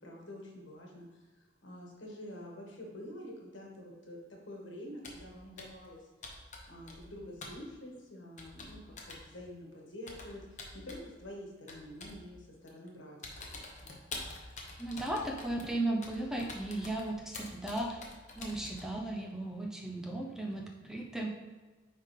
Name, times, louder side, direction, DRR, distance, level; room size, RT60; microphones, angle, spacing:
voice 1, 0.0-4.2 4.4-6.1 6.7-13.2 13.8-14.0, left 1 dB, 70° left, -1 dB, 1.5 m, -47 dB
Computer keyboard, 5.0-5.3 5.6-5.9 6.2-7.1 7.4-7.6 8.4-9.3 10.1-11.1 11.7-12.2 12.7-12.9 13.2-18.9, left 3 dB, 40° left, 1.0 m, -46 dB
voice 2, 14.8-18.0 18.4-21.3, right 1 dB, 5° right, -1 dB, 0.5 m, -36 dB
9.6 x 3.7 x 3.3 m, 1.3 s
head